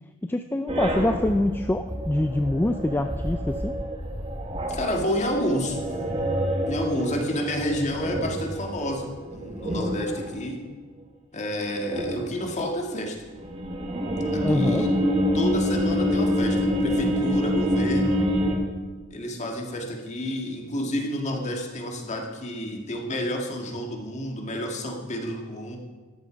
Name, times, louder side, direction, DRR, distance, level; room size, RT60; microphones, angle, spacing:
voice 1, 0.3-3.7 14.4-14.8, left 1 dB, 10° left, 7 dB, 0.3 m, -25 dB
sound 1, 0.7-10.3 11.7-12.5 13.2-18.6, equal, 30° right, 1.7 m, -27 dB
voice 2, 4.7-5.8 6.7-10.6 11.3-13.2 14.3-14.9 15.3-18.2 19.1-25.8, equal, 35° left, 2 dB, 1.8 m, -30 dB
13.5 x 10.5 x 5.1 m, 1.3 s
head